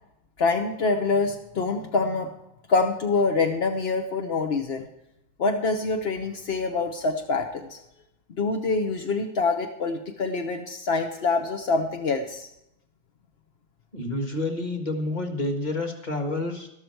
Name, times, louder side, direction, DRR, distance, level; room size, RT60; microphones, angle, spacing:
voice 1, 0.4-2.3 2.7-4.9 5.4-7.8 8.4-12.5, left 3 dB, 55° left, 4 dB, 0.7 m, -25 dB
voice 2, 13.9-16.7, left 2 dB, 25° left, 4 dB, 1.6 m, -29 dB
13.5 x 12.5 x 4.5 m, 0.83 s
omnidirectional pair, 2.2 m